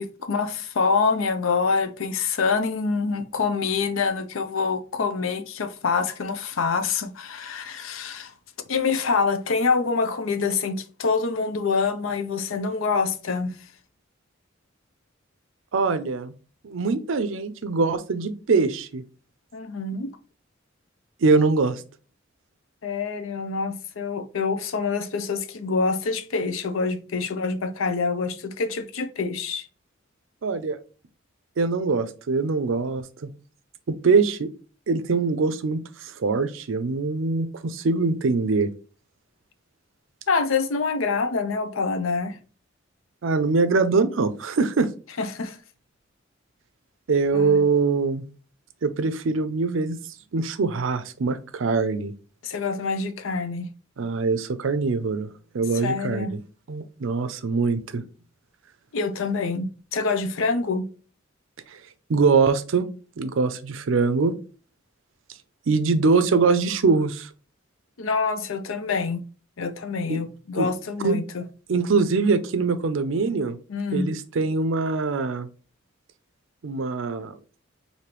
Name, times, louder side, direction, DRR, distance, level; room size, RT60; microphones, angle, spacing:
voice 1, 0.0-8.3 8.7-13.7 19.5-20.1 22.8-29.7 40.3-42.4 45.2-45.6 47.3-47.6 52.4-53.7 55.7-56.3 58.9-60.9 68.0-69.2 69.6-71.4 73.7-74.1, left 4 dB, 85° left, 0.6 m, -26 dB
voice 2, 15.7-16.3 16.6-19.0 21.2-21.8 30.4-30.8 31.6-33.3 33.9-34.5 34.9-38.7 43.2-44.9 47.1-48.2 48.8-50.0 50.3-52.1 54.0-55.3 55.5-56.4 56.7-58.0 62.1-62.9 63.2-64.3 65.7-67.3 70.1-70.2 70.6-70.7 71.0-71.2 71.7-73.6 73.9-75.5 76.6-77.4, right 4 dB, 75° right, 0.5 m, -23 dB
5.0 x 2.7 x 3.0 m
head